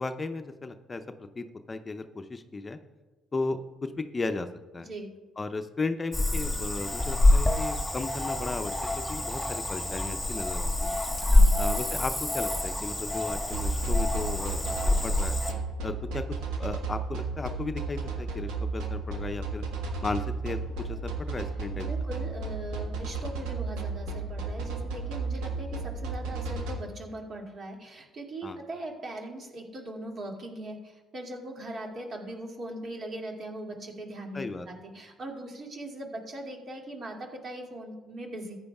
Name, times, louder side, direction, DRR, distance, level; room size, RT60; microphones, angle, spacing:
voice 1, 0.0-2.8 3.3-4.5 4.7-4.9 5.4-8.8 9.1-11.0 11.6-15.4 15.8-16.2 16.6-19.6 20.0-21.9 28.4-28.6 34.3-34.7, left 3 dB, 30° left, 8 dB, 0.7 m, -35 dB
Cricket / Frog, 6.1-15.5, left 2 dB, 5° left, 1.8 m, -26 dB
voice 2, 11.2-11.6 21.8-38.6, right 1 dB, 50° right, 0 dB, 2.4 m, -40 dB
sound 1, 13.5-26.7, right 4 dB, 80° right, 1.5 m, -33 dB
14.5 x 9.4 x 2.4 m, 1.2 s
supercardioid pair, 60°, 0 cm